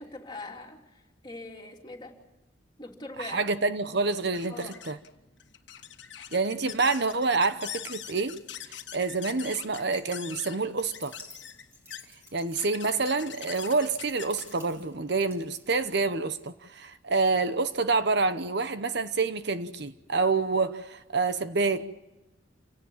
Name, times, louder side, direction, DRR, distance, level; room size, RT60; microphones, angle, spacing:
voice 1, 0.0-2.1 2.8-3.5 4.5-4.7, left 2 dB, 20° left, 3.1 m, -42 dB
voice 2, 3.2-5.0 6.3-8.3 8.7-11.2 12.3-21.9, right 4 dB, 55° right, 0.9 m, -27 dB
sound 1, 3.3-16.1, left 9 dB, 60° left, 1.7 m, -44 dB
sound 2, 10.7-16.4, equal, 15° right, 3.7 m, -53 dB
29.0 x 18.0 x 7.3 m
head